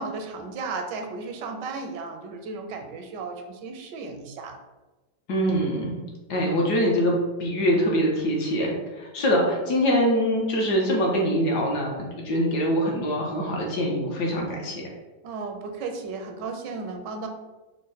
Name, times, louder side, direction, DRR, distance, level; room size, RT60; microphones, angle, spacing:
voice 1, 0.0-4.6 15.2-17.3, right 4 dB, 80° right, 4 dB, 1.2 m, -34 dB
voice 2, 5.3-6.0 6.3-14.9, equal, 70° left, -1 dB, 1.5 m, -24 dB
5.2 x 2.1 x 3.9 m, 1.1 s
omnidirectional pair, 1.9 m